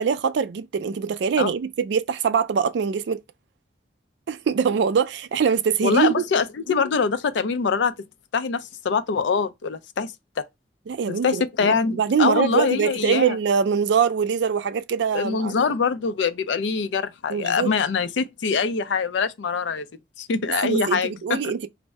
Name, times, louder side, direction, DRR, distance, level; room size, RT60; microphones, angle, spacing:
voice 1, 0.0-3.2 4.3-6.2 10.9-15.5 17.3-17.7 20.6-21.7, right 6 dB, 65° right, 0.3 m, -23 dB
voice 2, 5.8-7.9 8.3-10.4 11.2-13.4 15.1-19.9 20.2-21.4, left 5 dB, 75° left, 0.4 m, -24 dB
2.6 x 2.0 x 3.3 m
head